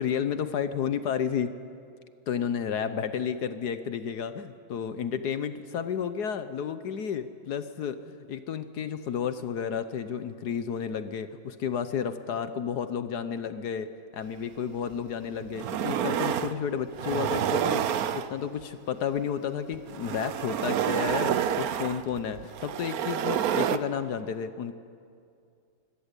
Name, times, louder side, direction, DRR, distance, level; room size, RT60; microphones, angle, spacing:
voice 1, 0.0-1.5 2.3-17.8 18.1-24.7, left 7 dB, 60° left, 11 dB, 1.3 m, -32 dB
sound 1, 14.9-15.0 15.4-16.6 16.9-18.6 19.7-23.8, right 9 dB, 65° right, 0.9 m, -28 dB
24.5 x 17.0 x 8.3 m, 2.4 s
omnidirectional pair, 2.2 m